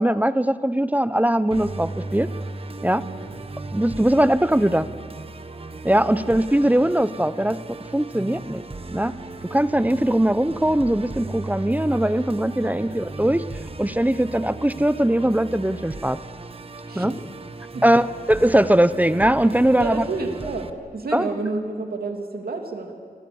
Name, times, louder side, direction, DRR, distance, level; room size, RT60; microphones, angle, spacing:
voice 1, 0.0-2.3 2.8-3.0 3.7-4.9 5.8-7.6 7.9-8.6 8.9-9.1 9.5-13.5 13.8-16.2 16.9-17.1 17.8-20.0 21.1-21.3, right 1 dB, 10° right, 14 dB, 0.7 m, -20 dB
Musical instrument, 1.5-20.7, right 2 dB, 40° right, 1.4 m, -36 dB
voice 2, 3.0-3.3 6.0-6.3 12.6-12.9 16.9-17.1 17.7-17.8 19.8-20.7 20.9-22.9, right 3 dB, 80° right, 3 dB, 3.0 m, -30 dB
29.0 x 22.0 x 7.1 m, 2.1 s
wide cardioid pair, 90°, 15 cm